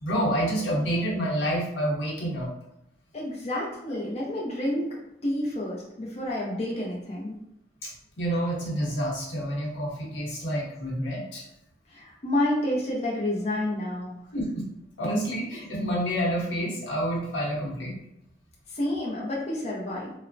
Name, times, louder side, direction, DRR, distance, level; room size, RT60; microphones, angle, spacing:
voice 1, 0.0-2.5 7.8-7.9 8.2-11.4 14.3-14.7 15.0-18.0, equal, 90° left, -3 dB, 0.8 m, -28 dB
voice 2, 3.1-7.4 11.9-14.1 18.7-20.1, left 1 dB, 35° left, -4 dB, 0.5 m, -29 dB
3.1 x 2.0 x 2.5 m, 0.80 s
head